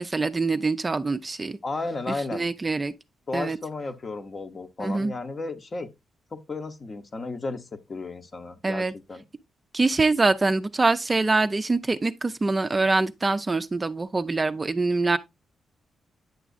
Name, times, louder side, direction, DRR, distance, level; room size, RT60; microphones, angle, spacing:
voice 1, 0.0-1.6 2.3-2.9 3.3-3.6 4.8-5.1 8.6-8.9 9.7-15.2, right 3 dB, 25° right, 0.4 m, -24 dB
voice 2, 1.6-2.5 3.3-5.9 6.3-9.2, left 3 dB, 35° left, 0.8 m, -34 dB
9.1 x 6.0 x 2.4 m
cardioid pair, 110°, 0 cm